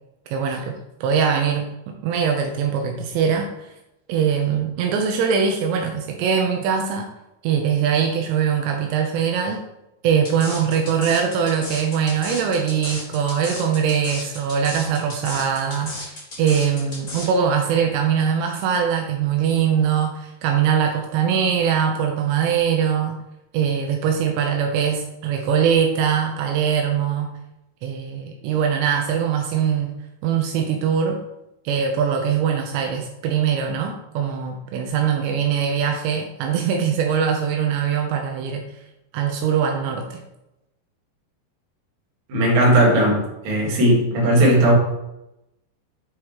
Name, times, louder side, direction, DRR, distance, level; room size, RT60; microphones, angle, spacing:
voice 1, 0.3-3.5 4.1-7.1 7.4-9.6 10.0-23.2 23.5-27.4 27.8-30.0 30.2-31.2 31.7-38.7 39.1-40.2, right 7 dB, 80° right, 3 dB, 2.9 m, -22 dB
sound 1, 10.2-17.3, left 2 dB, 55° left, 0.8 m, -34 dB
voice 2, 42.3-44.8, right 1 dB, 55° right, -4 dB, 2.6 m, -17 dB
9.0 x 4.7 x 3.0 m, 0.90 s
omnidirectional pair, 5.1 m